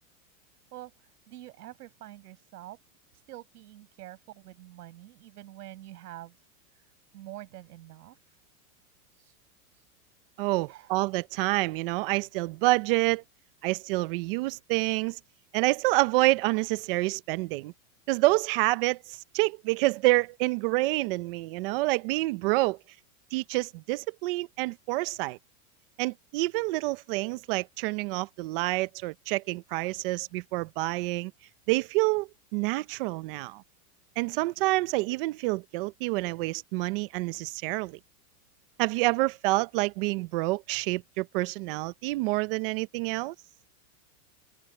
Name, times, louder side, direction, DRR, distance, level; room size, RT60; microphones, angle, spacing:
voice 1, 1.3-2.8 3.3-6.4 6.8-6.9 7.1-8.2 9.1-9.4 9.7-9.8 10.6-11.0, right 15 dB, 80° right, 7.5 m, -46 dB
voice 2, 10.4-13.2 13.6-15.2 15.5-17.7 18.1-22.8 23.3-25.4 26.0-31.3 31.7-33.6 34.2-38.0 38.8-43.3, right 21 dB, 40° right, 0.7 m, -28 dB
supercardioid pair, 170°, 46 cm